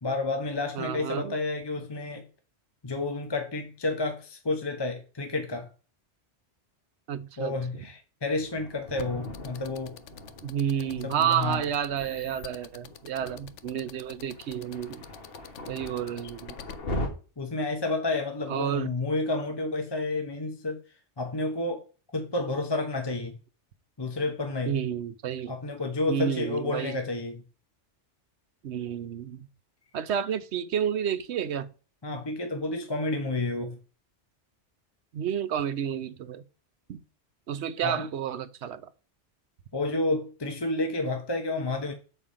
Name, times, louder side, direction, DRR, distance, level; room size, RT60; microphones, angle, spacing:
voice 1, 0.0-2.3 2.8-5.7 7.4-10.0 11.0-11.6 17.4-20.8 21.2-21.8 22.1-23.4 24.0-24.8 25.5-27.4 32.0-33.8 37.8-38.1 39.7-41.9, left 2 dB, 25° left, 0.8 m, -30 dB
voice 2, 0.7-1.4 7.1-7.8 10.4-15.0 15.7-16.6 18.5-18.9 24.7-25.5 26.1-27.0 28.6-29.5 29.9-31.7 35.1-36.4 36.9-37.0 37.5-38.8, right 9 dB, 70° right, 0.9 m, -30 dB
Thunder, 8.4-17.1, left 1 dB, 55° left, 1.6 m, -40 dB
sound 1, 9.0-16.7, left 11 dB, 80° left, 0.9 m, -45 dB
7.1 x 4.4 x 5.0 m
omnidirectional pair, 1.2 m